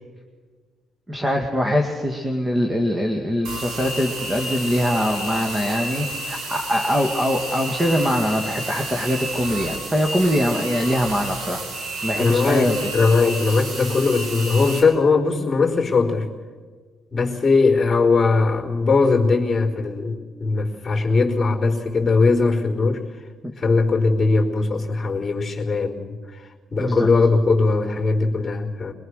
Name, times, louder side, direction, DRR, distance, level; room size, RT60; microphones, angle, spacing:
voice 1, 1.1-12.9 23.4-23.5 26.8-27.1, equal, 20° right, 3 dB, 2.0 m, -23 dB
sound 1, 3.4-14.8, right 2 dB, 85° right, 4.3 m, -31 dB
voice 2, 12.2-16.3 17.1-23.0 23.6-28.9, left 4 dB, 20° left, -10 dB, 4.1 m, -20 dB
22.5 x 21.5 x 6.5 m, 1.5 s
cardioid pair, 90°, 0 cm